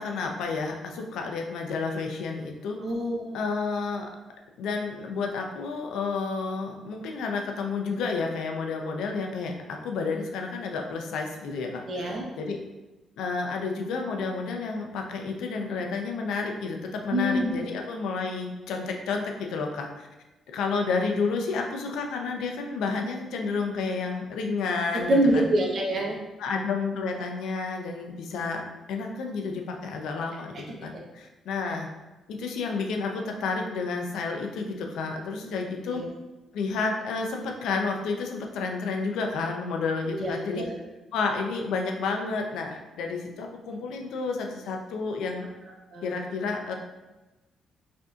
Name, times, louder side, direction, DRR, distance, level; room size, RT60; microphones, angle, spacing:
voice 1, 0.0-2.8 3.3-4.1 4.6-12.6 13.2-20.1 20.5-25.5 26.4-28.6 28.9-30.6 30.8-31.9 32.3-36.0 36.5-40.7 41.1-45.5 46.0-46.7, left 4 dB, 85° left, 2 dB, 0.5 m, -30 dB
voice 2, 2.8-3.4 11.9-12.2 17.1-17.6 24.9-26.2 30.7-31.0 35.9-36.1 40.1-40.7 45.9-46.1, right 1 dB, 50° right, -1 dB, 0.8 m, -26 dB
4.9 x 2.7 x 2.4 m, 1.1 s
cardioid pair, 90°, 0 cm